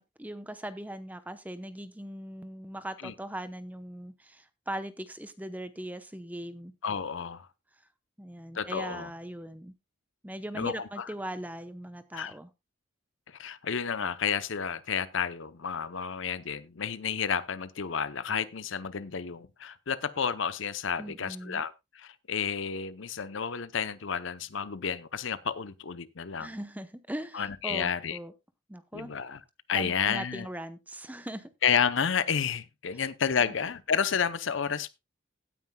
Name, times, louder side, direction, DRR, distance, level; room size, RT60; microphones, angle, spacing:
voice 1, 0.0-6.7 8.2-9.7 10.2-12.5 21.0-21.6 26.4-28.3 28.7-29.1 29.7-31.5 33.4-33.5, right 1 dB, 10° right, 0.7 m, -40 dB
voice 2, 6.8-7.5 8.5-9.1 10.5-11.0 12.1-12.3 13.3-26.5 27.3-28.2 28.9-29.4 29.7-30.5 31.6-34.9, left 7 dB, 65° left, 0.7 m, -31 dB
16.5 x 9.4 x 2.2 m
head